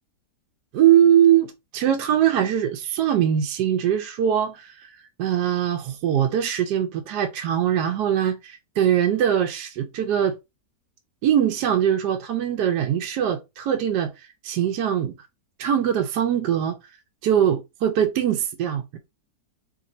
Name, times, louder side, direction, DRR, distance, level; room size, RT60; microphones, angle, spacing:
voice 1, 0.7-4.9 5.2-10.3 11.2-14.1 14.4-15.1 15.6-16.8 17.2-19.0, right 10 dB, 80° right, 1.2 m, -22 dB
3.0 x 2.6 x 4.1 m
omnidirectional pair, 1.8 m